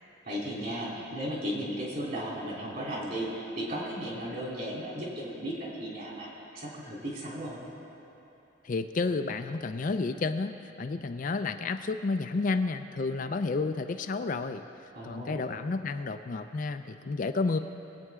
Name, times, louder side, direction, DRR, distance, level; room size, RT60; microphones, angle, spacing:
voice 1, 0.2-6.3 6.5-7.6 14.9-15.4, equal, 50° right, -5 dB, 3.2 m, -35 dB
voice 2, 8.6-14.6 15.0-17.6, left 3 dB, 45° left, 8 dB, 0.4 m, -31 dB
22.0 x 8.6 x 3.6 m, 3.0 s
head